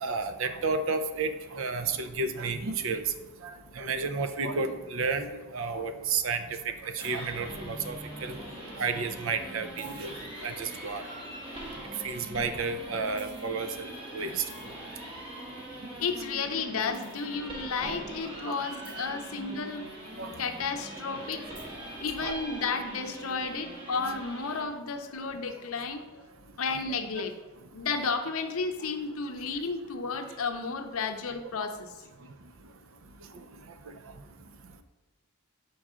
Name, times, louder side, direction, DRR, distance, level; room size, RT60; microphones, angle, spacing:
voice 1, 0.0-3.0 3.4-5.3 5.5-6.4 6.8-8.4 8.8-10.2 10.4-11.0 12.0-13.9 14.1-14.4 18.4-18.5 20.2-20.3 22.2-22.4, right 4 dB, 60° right, 9 dB, 0.5 m, -31 dB
sound 1, 7.0-24.6, right 1 dB, 25° right, 1.5 m, -42 dB
voice 2, 16.0-19.8 20.4-21.5 22.0-26.2 26.6-27.3 27.7-31.9, left 4 dB, 70° left, 6 dB, 0.6 m, -32 dB
7.4 x 4.7 x 3.6 m, 1.2 s
head